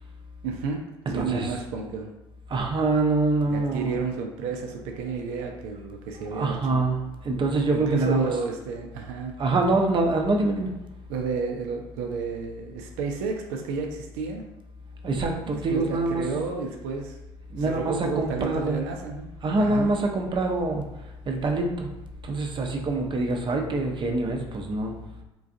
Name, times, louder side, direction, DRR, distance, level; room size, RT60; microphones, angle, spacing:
voice 1, 0.4-2.1 3.4-6.8 7.7-9.3 11.1-14.5 15.5-17.2 17.6-19.3 19.6-19.9, right 5 dB, 70° right, 2 dB, 0.4 m, -31 dB
voice 2, 1.1-1.5 2.5-4.0 6.3-8.3 9.4-10.7 15.0-16.3 17.5-18.8 19.4-20.8 21.3-21.9 22.3-24.9, right 2 dB, 35° right, 3 dB, 0.7 m, -25 dB
3.8 x 2.4 x 2.6 m, 1.0 s
hypercardioid pair, 60°, 13 cm